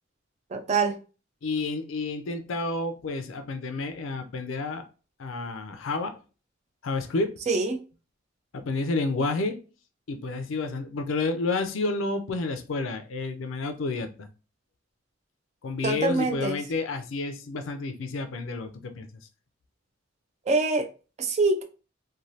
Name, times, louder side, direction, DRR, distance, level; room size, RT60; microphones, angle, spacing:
voice 1, 0.5-1.0 7.5-7.8 15.8-16.6 20.5-20.9 21.2-21.6, right 3 dB, 35° right, 0.4 m, -24 dB
voice 2, 1.4-4.9 5.2-6.2 6.8-7.3 8.5-9.6 10.1-14.3 15.6-19.1, left 3 dB, 80° left, 0.4 m, -30 dB
3.1 x 2.2 x 2.6 m
head